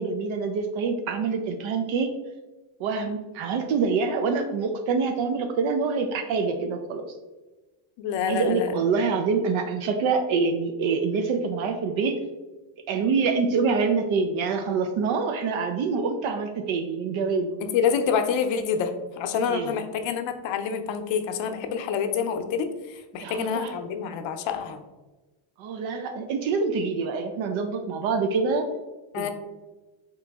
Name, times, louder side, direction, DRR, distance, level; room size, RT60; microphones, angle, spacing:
voice 1, 0.0-2.1 2.8-7.1 8.3-12.2 12.9-17.6 19.5-19.8 23.2-23.7 25.6-28.7 29.2-29.3, right 4 dB, 75° right, 6 dB, 0.6 m, -26 dB
voice 2, 8.0-8.7 17.7-24.8 29.1-29.3, left 6 dB, 70° left, 7 dB, 0.6 m, -27 dB
3.8 x 3.0 x 3.4 m, 1.2 s
cardioid pair, 140°, 48 cm